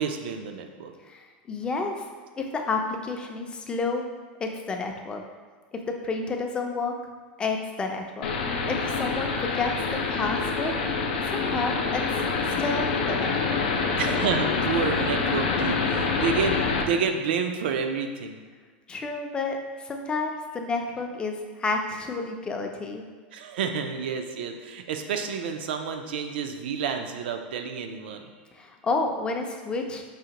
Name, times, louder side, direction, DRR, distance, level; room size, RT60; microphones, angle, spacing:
voice 1, 0.0-0.9 14.0-18.4 23.3-28.3, right 6 dB, 80° right, 6 dB, 0.4 m, -29 dB
voice 2, 1.1-2.0 2.4-4.1 4.4-5.2 5.9-6.9 7.4-8.3 8.7-9.7 10.1-10.7 11.3-12.0 12.6-13.6 18.9-23.0 28.6-30.0, left 3 dB, 20° left, 3 dB, 0.4 m, -30 dB
sound 1, 8.2-16.8, left 4 dB, 90° left, 0.4 m, -26 dB
4.8 x 2.5 x 2.9 m, 1.4 s
supercardioid pair, 130°, 5 cm